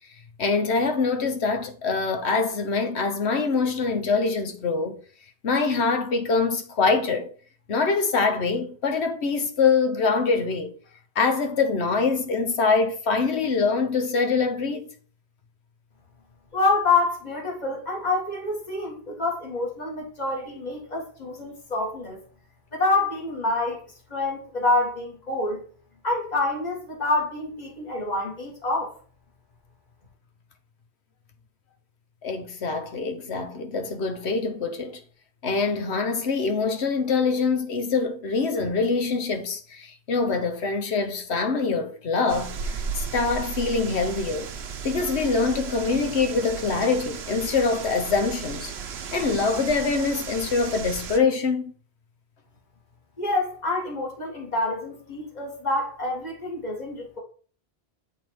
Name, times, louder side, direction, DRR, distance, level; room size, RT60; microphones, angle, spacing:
voice 1, 0.4-5.0 5.4-7.3 7.7-10.7 11.2-14.9 32.2-35.0 35.4-44.5 44.8-48.7 49.1-51.7, left 4 dB, 85° left, 1.2 m, -24 dB
voice 2, 16.5-22.2 22.7-23.8 24.1-25.6 26.0-28.9 53.2-57.2, left 2 dB, 40° left, 2.2 m, -27 dB
sound 1, 42.3-51.2, right 6 dB, 75° right, 1.0 m, -35 dB
7.9 x 3.6 x 4.6 m
omnidirectional pair, 1.1 m